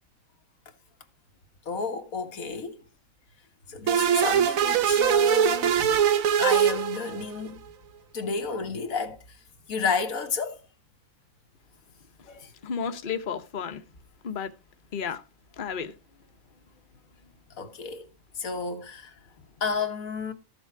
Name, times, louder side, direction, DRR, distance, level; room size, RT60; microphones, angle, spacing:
voice 1, 1.7-2.8 3.7-5.8 6.4-7.6 8.1-9.4 9.7-10.7 12.3-12.5 17.6-18.1 18.4-19.1 19.6-20.3, left 5 dB, 90° left, 1.8 m, -31 dB
sound 1, 3.9-7.5, right 8 dB, 80° right, 1.3 m, -22 dB
voice 2, 12.6-13.8 14.2-14.5 14.9-15.2 15.6-15.9, left 6 dB, 40° left, 1.1 m, -32 dB
14.0 x 7.0 x 4.6 m
omnidirectional pair, 1.4 m